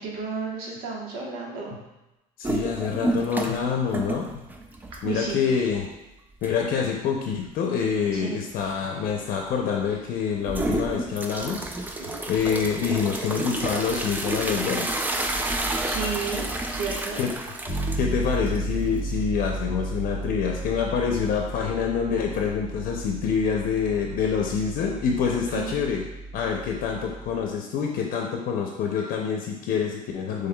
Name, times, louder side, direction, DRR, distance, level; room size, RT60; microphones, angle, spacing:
voice 1, 0.0-1.7 5.0-5.4 8.1-8.4 12.0-12.2 15.6-17.2 25.3-25.8, right 5 dB, 90° right, -3 dB, 1.2 m, -33 dB
voice 2, 2.4-4.3 5.0-5.9 6.4-11.7 12.3-14.9 17.2-17.3 18.0-26.0 26.3-30.5, left 6 dB, 65° left, 1 dB, 0.6 m, -26 dB
sound 1, 2.4-3.7 3.9-5.3 5.7-5.8 6.4-6.5 10.4-19.2, right 2 dB, 10° right, 0.4 m, -30 dB
Bass guitar, 17.7-27.4, right 2 dB, 30° right, 1.4 m, -34 dB
5.5 x 3.3 x 2.3 m, 0.95 s
cardioid pair, 130°, 15 cm